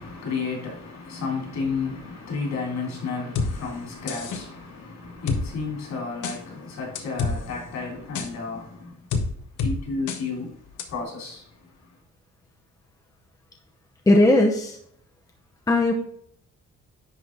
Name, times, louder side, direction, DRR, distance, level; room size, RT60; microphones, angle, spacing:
voice 1, 0.0-8.9 9.6-10.5 10.9-11.4, left 4 dB, 65° left, 3.4 m, -32 dB
sound 1, 3.4-3.5 4.1-4.4 5.3-5.4 6.2-6.4 7.0-7.4 8.2-8.3 9.1-9.3 9.6-9.7 10.1-10.2 10.8-10.9, left 5 dB, 85° left, 1.1 m, -26 dB
voice 2, 14.1-14.7 15.7-15.9, left 1 dB, 10° left, 0.8 m, -17 dB
10.5 x 3.9 x 3.8 m
cardioid pair, 135°, 30 cm